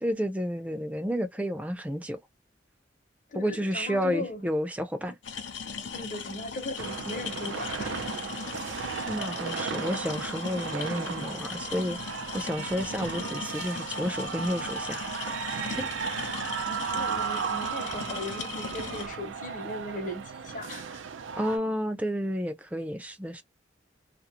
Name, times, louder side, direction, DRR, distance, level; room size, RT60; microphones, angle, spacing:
voice 1, 0.0-2.2 3.3-5.1 9.1-12.0 12.3-15.3 15.8-15.9 21.4-23.4, equal, 10° right, 0.4 m, -31 dB
voice 2, 3.3-4.5 5.9-8.1 16.7-21.1, left 2 dB, 45° left, 0.9 m, -38 dB
sound 1, 5.2-19.1, left 6 dB, 80° left, 0.7 m, -38 dB
sound 2, 6.8-21.6, right 6 dB, 90° right, 0.4 m, -35 dB
2.4 x 2.0 x 2.8 m
head